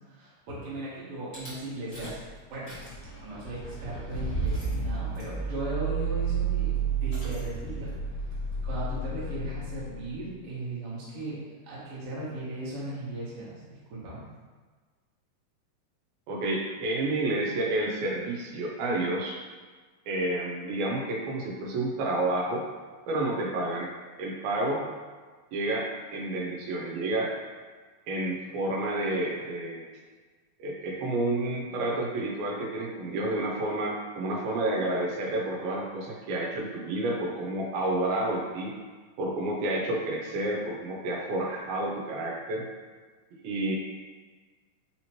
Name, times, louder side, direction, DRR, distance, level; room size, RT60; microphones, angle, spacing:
voice 1, 0.1-2.2 2.5-2.7 3.2-7.9 8.6-13.6 13.9-14.3, right 2 dB, 60° right, -8 dB, 1.6 m, -37 dB
Rattle / Car / Engine starting, 1.3-1.5 1.9-2.3 2.5-10.3, right 4 dB, 90° left, 0.7 m, -32 dB
voice 2, 16.3-19.4 20.1-22.7 23.1-23.9 24.2-24.9 25.5-27.3 28.1-29.9 30.6-38.8 39.2-42.7 43.3-43.8, right 2 dB, 85° right, -2 dB, 2.5 m, -30 dB
5.5 x 2.9 x 2.9 m, 1.4 s
omnidirectional pair, 4.2 m